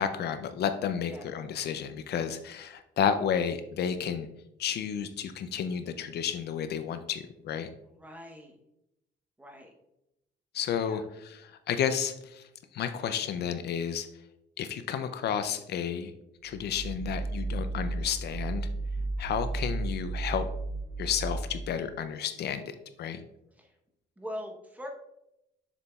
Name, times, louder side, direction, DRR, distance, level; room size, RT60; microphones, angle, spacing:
voice 1, 0.0-4.3 4.6-7.7 10.5-12.5 12.7-14.1 14.6-16.1 16.4-18.7 19.2-20.4 21.0-23.2, left 8 dB, 60° left, 10 dB, 0.4 m, -31 dB
voice 2, 8.0-8.5 9.4-9.7 10.8-11.0 23.5-23.7 24.2-24.9, equal, 10° right, 1 dB, 0.8 m, -42 dB
sound 1, 16.5-21.9, right 2 dB, 65° right, 0.4 m, -34 dB
6.9 x 6.8 x 2.3 m, 0.87 s
cardioid pair, 160°, 20 cm